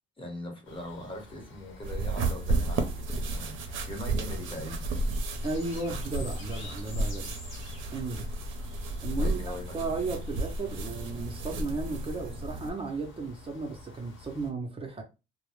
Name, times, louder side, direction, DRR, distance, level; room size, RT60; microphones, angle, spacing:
voice 1, 0.2-4.9 9.2-10.0, left 1 dB, 25° left, 0.9 m, -41 dB
sound 1, 0.6-14.5, left 2 dB, 80° left, 0.9 m, -50 dB
sound 2, 1.8-12.7, right 2 dB, 75° right, 0.5 m, -32 dB
voice 2, 5.4-7.3 7.9-8.3 9.0-9.4 9.7-15.0, right 3 dB, 30° right, 0.5 m, -34 dB
2.1 x 2.0 x 3.0 m
cardioid pair, 90°, 20 cm